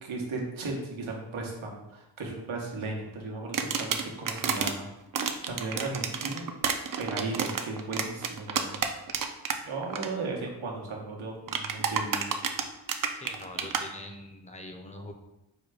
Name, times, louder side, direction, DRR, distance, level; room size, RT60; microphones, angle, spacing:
voice 1, 0.0-4.9 5.5-6.5 7.0-8.8 9.6-12.3, right 3 dB, 90° right, -1 dB, 1.0 m, -36 dB
sound 1, 3.5-4.7 5.1-9.6 9.8-10.1 11.5-13.8, right 6 dB, 45° right, 0.5 m, -30 dB
voice 2, 13.1-15.1, left 1 dB, 15° left, 3 dB, 0.6 m, -43 dB
4.8 x 2.2 x 4.8 m, 0.92 s
wide cardioid pair, 85°, 47 cm